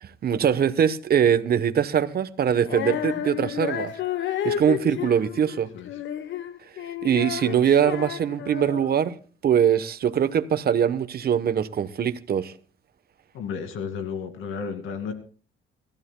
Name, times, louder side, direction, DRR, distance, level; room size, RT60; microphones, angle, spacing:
voice 1, 0.0-3.9 4.4-5.7 7.0-9.1 9.4-12.5, right 8 dB, 50° right, 1.0 m, -22 dB
Female singing, 2.6-9.1, left 10 dB, 70° left, 1.1 m, -31 dB
voice 2, 13.3-15.1, left 6 dB, 90° left, 2.3 m, -33 dB
25.5 x 14.0 x 2.3 m
cardioid pair, 90°, 20 cm